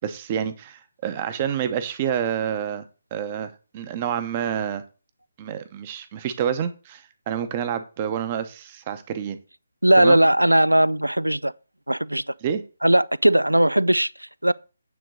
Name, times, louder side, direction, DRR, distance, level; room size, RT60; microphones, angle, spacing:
voice 1, 0.0-2.8 3.1-4.8 5.4-9.4 9.9-10.2 12.4-12.6, right 8 dB, 25° right, 0.9 m, -28 dB
voice 2, 9.8-11.5 11.9-12.2 12.8-14.5, right 1 dB, 85° right, 0.3 m, -18 dB
9.2 x 3.9 x 6.3 m
figure-of-eight pair, 145°, 0 cm